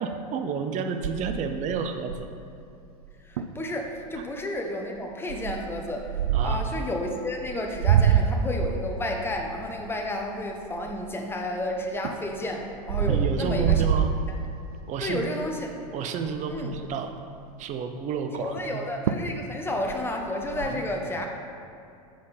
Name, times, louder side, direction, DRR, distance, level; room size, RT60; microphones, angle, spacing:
voice 1, 0.0-2.3 4.2-4.3 6.3-6.8 13.1-14.1 14.9-15.4 15.9-17.1 17.6-18.8 20.6-20.9 21.1-21.3, right 6 dB, 40° right, 6 dB, 0.7 m, -31 dB
sound 1, 1.0-2.5 3.0-3.1 3.4-3.6 4.2-4.5 5.3-6.8 7.4-11.3 11.8-14.8 15.3-15.6 15.9-16.0 16.2-17.0 18.6-18.7 19.1-19.4 19.7-20.7, right 8 dB, 80° right, 0.5 m, -26 dB
voice 2, 3.2-6.1 6.4-13.9 15.0-15.7 16.5-16.8 18.4-21.3, left 1 dB, 10° left, 2 dB, 1.0 m, -31 dB
7.8 x 5.2 x 4.2 m, 2.6 s
hypercardioid pair, 100°, 19 cm